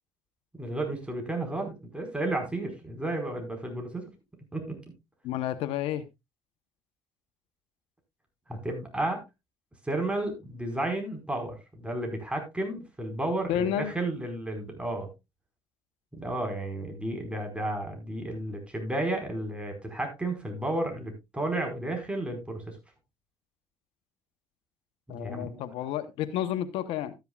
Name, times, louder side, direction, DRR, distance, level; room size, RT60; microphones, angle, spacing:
voice 1, 0.6-4.1 4.5-4.8 8.5-9.2 9.8-15.1 16.1-22.7 25.1-25.6, right 1 dB, 10° right, 4 dB, 4.9 m, -32 dB
voice 2, 5.2-6.0 13.5-13.9 25.1-27.1, left 11 dB, 85° left, 11 dB, 1.0 m, -30 dB
13.0 x 10.5 x 2.4 m, 0.23 s
cardioid pair, 90°, 9 cm